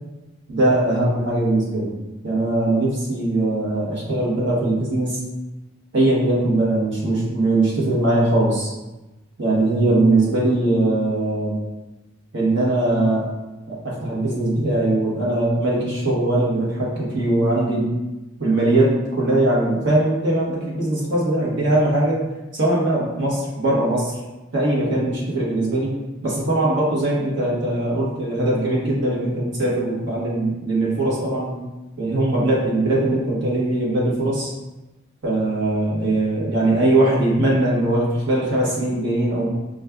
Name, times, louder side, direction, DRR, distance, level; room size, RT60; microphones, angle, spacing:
voice 1, 0.5-1.9 2.2-5.2 5.9-8.7 9.4-11.6 12.3-13.3 13.7-17.9 18.4-22.2 22.5-24.1 24.5-25.9 26.2-31.5 32.0-34.5 35.2-39.5, right 1 dB, 60° right, -6 dB, 1.2 m, -20 dB
5.0 x 2.4 x 2.3 m, 1.0 s
head